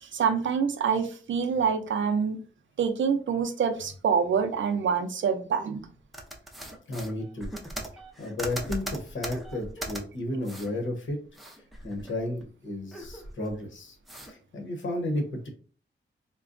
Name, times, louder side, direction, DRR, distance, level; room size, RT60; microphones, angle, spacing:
voice 1, 0.0-2.4 2.8-5.8, right 6 dB, 70° right, 7 dB, 0.5 m, -26 dB
sound 1, 6.1-10.0 10.4-10.7 11.1-12.4 12.7-13.6 14.1-14.3, right 1 dB, ahead, 0.5 m, -39 dB
voice 2, 6.9-7.5 8.2-11.2 11.8-14.0 14.3-15.5, left 1 dB, 70° left, 3 dB, 0.9 m, -33 dB
3.8 x 2.1 x 2.5 m, 0.39 s
wide cardioid pair, 130°, 20 cm